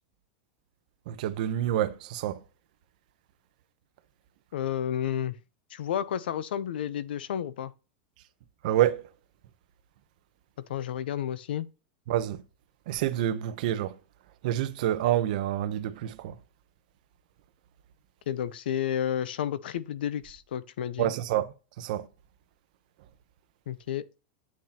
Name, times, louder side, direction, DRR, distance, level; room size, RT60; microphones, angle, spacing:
voice 1, 1.1-2.4 8.6-9.0 12.1-12.4 12.9-13.9 14.4-16.3 21.0-21.5 21.8-22.1, right 12 dB, 55° right, 0.9 m, -27 dB
voice 2, 4.5-5.4 5.7-7.7 10.7-11.7 18.3-21.1 23.7-24.0, left 9 dB, 85° left, 0.7 m, -31 dB
8.8 x 6.3 x 2.9 m
supercardioid pair, 170°, 5 cm